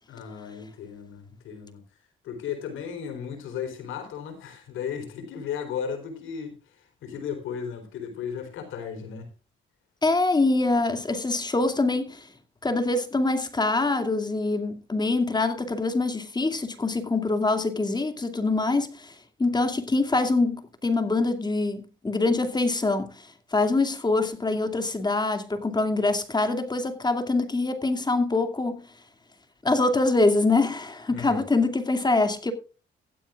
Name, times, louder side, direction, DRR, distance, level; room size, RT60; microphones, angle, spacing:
voice 1, 0.1-1.8 2.2-6.6 7.0-9.3 31.1-31.4, left 7 dB, 85° left, 3.9 m, -35 dB
voice 2, 10.0-12.3 12.6-28.8 29.6-32.5, left 3 dB, 20° left, 2.5 m, -24 dB
15.5 x 12.5 x 2.5 m
cardioid pair, 90°, 20 cm